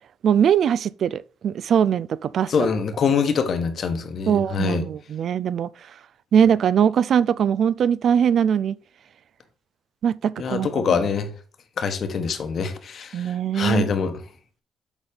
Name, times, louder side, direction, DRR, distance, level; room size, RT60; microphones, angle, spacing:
voice 1, 0.2-2.5 4.3-5.7 6.3-8.8 10.0-11.0 13.1-13.9, right 8 dB, 65° right, 0.3 m, -21 dB
voice 2, 2.5-4.9 10.4-11.3 11.8-13.2 13.5-14.2, left 6 dB, 55° left, 1.1 m, -24 dB
7.1 x 4.0 x 5.2 m
cardioid pair, 90°, 0 cm